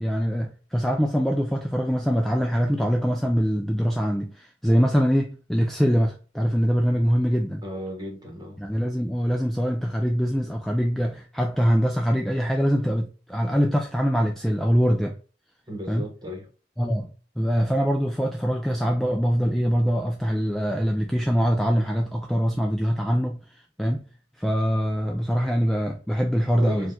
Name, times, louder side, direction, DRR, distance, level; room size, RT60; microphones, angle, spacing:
voice 1, 0.0-7.6 8.6-15.1 15.9-16.0 16.8-17.1 17.4-23.4 23.8-24.1 24.4-26.9, equal, ahead, 0.3 m, -23 dB
voice 2, 7.6-8.6 15.7-16.5 26.6-26.9, equal, 20° right, 1.2 m, -35 dB
4.4 x 2.4 x 3.7 m
head